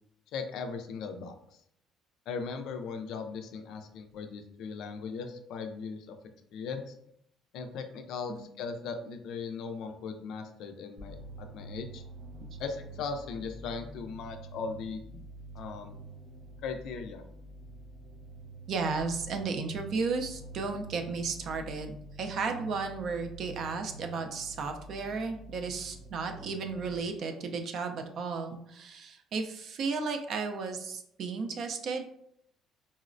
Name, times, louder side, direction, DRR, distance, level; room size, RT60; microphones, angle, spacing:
voice 1, 0.3-1.6 2.3-6.2 6.5-6.9 7.5-12.0 12.6-15.2 15.5-16.0 16.6-17.2, left 5 dB, 70° left, 6 dB, 0.4 m, -38 dB
sound 1, 11.0-27.0, right 2 dB, 80° right, 1.2 m, -47 dB
voice 2, 18.7-32.1, right 4 dB, 50° right, 5 dB, 0.4 m, -34 dB
3.8 x 2.0 x 2.5 m, 0.73 s
cardioid pair, 140°, 0 cm